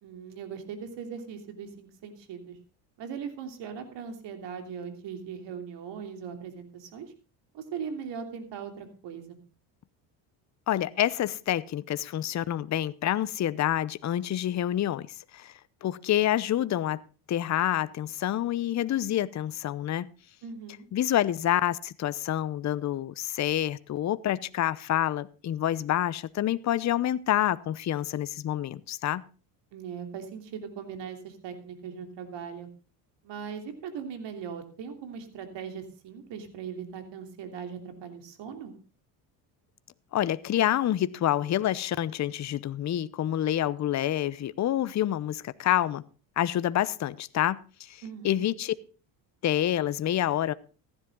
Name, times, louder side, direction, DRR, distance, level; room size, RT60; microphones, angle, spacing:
voice 1, 0.0-2.5 3.0-7.1 7.5-9.4 20.4-20.8 29.7-32.7 33.2-38.7 48.0-48.5, right 7 dB, 60° right, 6 dB, 3.2 m, -39 dB
voice 2, 10.7-15.5 15.8-17.0 17.3-20.1 20.9-29.2 40.1-46.0 46.4-48.7 49.4-50.5, left 12 dB, 35° left, 17 dB, 0.8 m, -27 dB
15.0 x 11.0 x 3.8 m, 0.36 s
supercardioid pair, 80°, 47 cm